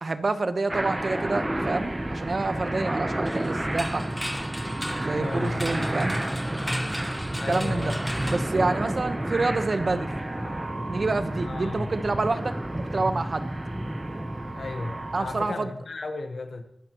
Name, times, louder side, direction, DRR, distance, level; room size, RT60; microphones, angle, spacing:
voice 1, 0.0-4.1 5.0-6.2 7.5-7.9 8.3-10.1 10.9-13.5 15.1-15.7, right 3 dB, 50° right, 10 dB, 1.1 m, -28 dB
sound 1, 0.7-15.5, right 1 dB, 15° right, 0.9 m, -31 dB
sound 2, 0.9-15.4, right 3 dB, 75° right, 4.1 m, -43 dB
sound 3, 3.3-9.2, equal, ahead, 1.4 m, -36 dB
voice 2, 5.1-5.6 7.4-8.0 11.4-11.9 14.6-16.6, left 3 dB, 65° left, 6 dB, 1.1 m, -34 dB
23.0 x 12.0 x 3.0 m, 0.77 s
wide cardioid pair, 110°, 0 cm